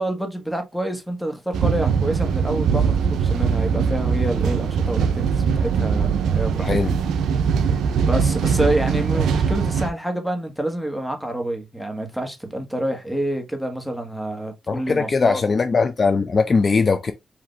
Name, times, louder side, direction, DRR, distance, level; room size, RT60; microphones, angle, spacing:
voice 1, 0.0-6.8 8.0-15.4, right 1 dB, ahead, 1.5 m, -27 dB
sound 1, 1.5-9.9, right 6 dB, 90° right, 0.4 m, -21 dB
voice 2, 6.6-6.9 14.7-17.1, left 4 dB, 45° left, 0.5 m, -20 dB
4.9 x 2.8 x 3.2 m
cardioid pair, 65°, 0 cm